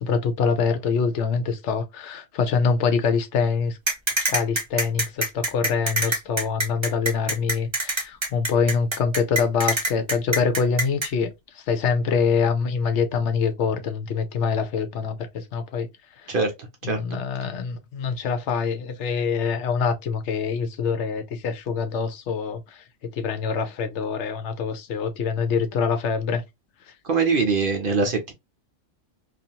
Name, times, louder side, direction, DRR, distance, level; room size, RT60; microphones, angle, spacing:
voice 1, 0.0-3.8 4.3-15.9 16.2-16.3 16.8-26.4 26.9-27.0, left 5 dB, 75° left, 0.9 m, -25 dB
sound 1, 3.9-11.1, right 1 dB, 25° right, 0.8 m, -24 dB
voice 2, 27.1-28.3, right 4 dB, 55° right, 0.7 m, -22 dB
2.6 x 2.4 x 2.7 m
omnidirectional pair, 1.3 m